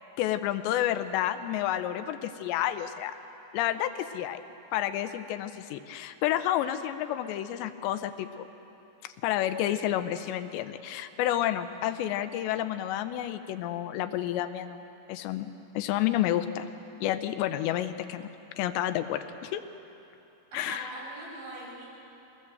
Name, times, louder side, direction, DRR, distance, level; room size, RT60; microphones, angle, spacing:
voice 1, 0.2-3.2 3.5-4.4 4.7-8.5 9.0-14.8 15.1-16.7 17.0-18.3 18.6-19.6 20.5-20.9, left 12 dB, 80° left, 10 dB, 2.8 m, -30 dB
voice 2, 20.5-21.8, right 1 dB, 90° right, -6 dB, 8.8 m, -41 dB
22.5 x 19.0 x 7.8 m, 2.9 s
omnidirectional pair, 5.2 m